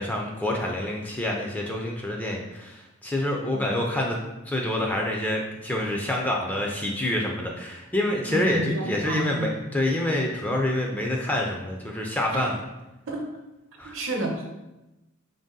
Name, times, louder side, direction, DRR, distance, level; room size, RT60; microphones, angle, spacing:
voice 1, 0.0-4.2 4.5-12.6 13.8-14.0, left 1 dB, 10° left, -1 dB, 0.3 m, -27 dB
voice 2, 8.3-9.6 12.3-12.4 13.1-13.2 13.8-14.5, right 1 dB, 70° right, 1 dB, 0.8 m, -30 dB
3.8 x 2.7 x 3.7 m, 0.98 s
head